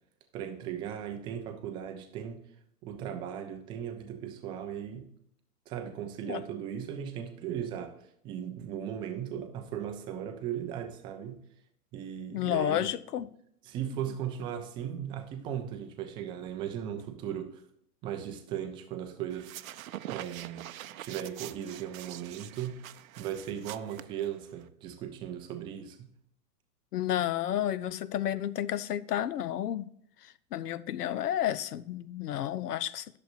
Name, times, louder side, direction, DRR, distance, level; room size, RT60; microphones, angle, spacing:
voice 1, 0.3-2.4 2.8-5.0 5.7-11.4 11.9-12.9 13.6-17.6 18.0-19.6 20.0-20.7 21.0-22.8 23.2-26.1, right 9 dB, 10° right, 0.4 m, -37 dB
voice 2, 12.3-13.3 26.9-29.9 30.5-33.2, left 11 dB, 75° left, 0.6 m, -31 dB
sound 1, 19.3-24.7, right 13 dB, 60° right, 0.6 m, -44 dB
11.0 x 6.8 x 2.5 m
hypercardioid pair, 110°, 47 cm